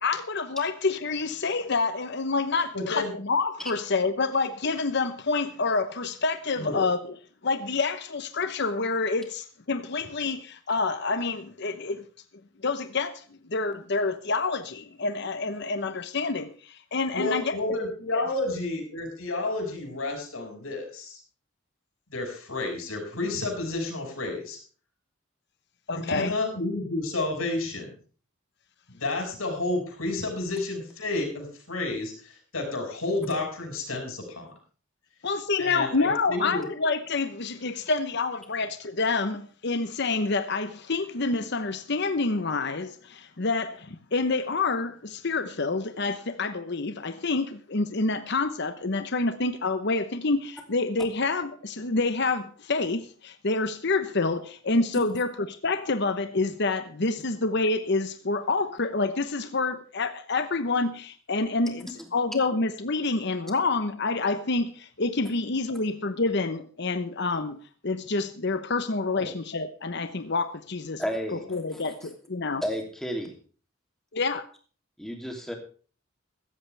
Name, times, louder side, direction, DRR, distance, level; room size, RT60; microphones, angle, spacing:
voice 1, 0.0-7.0 7.4-12.0 12.6-17.6 18.1-18.2 25.9-26.3 35.2-67.6 67.8-71.0 71.3-72.6 74.1-74.5, left 3 dB, 55° left, 1.0 m, -28 dB
voice 2, 2.7-3.1 6.6-6.8 17.1-21.2 22.1-24.6 25.9-28.0 28.9-34.5 35.6-36.7 69.1-69.3, left 2 dB, 80° left, 6.4 m, -31 dB
voice 3, 71.0-71.4 71.7-71.9 72.6-73.4 75.0-75.5, equal, ahead, 2.9 m, -32 dB
16.0 x 14.0 x 3.4 m
head